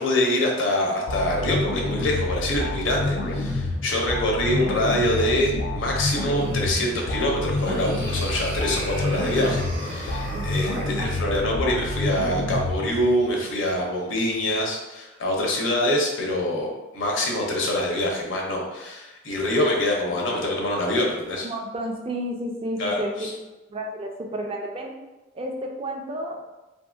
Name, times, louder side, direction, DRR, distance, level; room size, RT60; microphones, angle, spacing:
voice 1, 0.0-21.5 22.8-23.3, left 1 dB, 80° left, -1 dB, 0.7 m, -25 dB
sound 1, 1.1-13.3, left 1 dB, 60° left, 0.3 m, -28 dB
sound 2, 6.2-11.0, right 1 dB, 85° right, 0.7 m, -37 dB
voice 2, 10.7-11.1 21.4-24.9 25.3-26.4, right 1 dB, 30° right, 1 dB, 0.3 m, -32 dB
2.7 x 2.6 x 2.3 m, 1.1 s
head